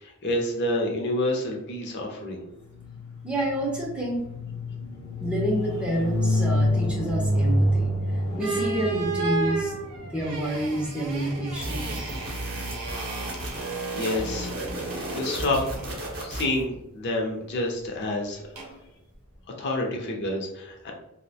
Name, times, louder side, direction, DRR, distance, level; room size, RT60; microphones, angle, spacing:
voice 1, 0.0-2.4 13.5-13.6 13.9-14.5 15.1-16.0 16.2-18.4 19.6-20.9, left 1 dB, 55° left, 1 dB, 0.5 m, -28 dB
sound 1, 2.7-12.6, left 1 dB, 85° left, 0.7 m, -28 dB
voice 2, 3.2-4.3 5.2-7.9 8.3-9.7 10.1-12.1, right 1 dB, 5° right, -3 dB, 0.4 m, -28 dB
sound 2, 8.4-16.0 18.6-18.8, right 3 dB, 80° right, 0.6 m, -34 dB
sound 3, 11.5-16.6, right 1 dB, 50° right, 0.7 m, -34 dB
2.3 x 2.1 x 2.7 m, 0.84 s
head